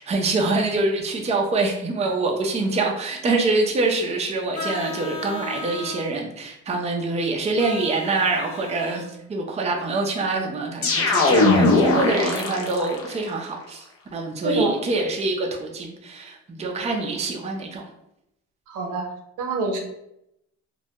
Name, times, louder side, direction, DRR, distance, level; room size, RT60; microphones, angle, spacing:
voice 1, 0.0-13.9 14.1-17.9, right 3 dB, 20° right, 1 dB, 0.4 m, -25 dB
Vehicle horn car horn honking, 4.5-6.1 7.6-9.1 11.2-12.4, left 2 dB, 75° left, 0.8 m, -36 dB
sound 1, 10.8-13.1, left 3 dB, 50° left, 0.5 m, -19 dB
voice 2, 14.4-14.8 18.7-19.1 19.4-19.8, right 3 dB, 85° right, 3 dB, 0.6 m, -25 dB
2.2 x 2.1 x 2.7 m, 0.81 s
cardioid pair, 90°, 30 cm